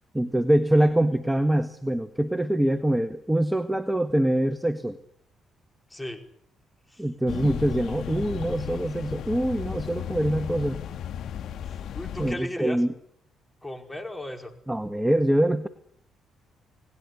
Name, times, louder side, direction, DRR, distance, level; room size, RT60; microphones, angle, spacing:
voice 1, 0.1-5.0 7.0-10.8 12.2-12.9 14.7-15.7, right 1 dB, 5° right, 9 dB, 1.5 m, -24 dB
voice 2, 5.9-6.2 6.9-7.0 11.9-12.8 13.6-14.5, left 1 dB, 10° left, 5 dB, 5.1 m, -35 dB
sound 1, 7.3-12.3, left 9 dB, 75° left, 2.2 m, -35 dB
29.0 x 19.0 x 9.8 m, 0.69 s
cardioid pair, 90°, 0 cm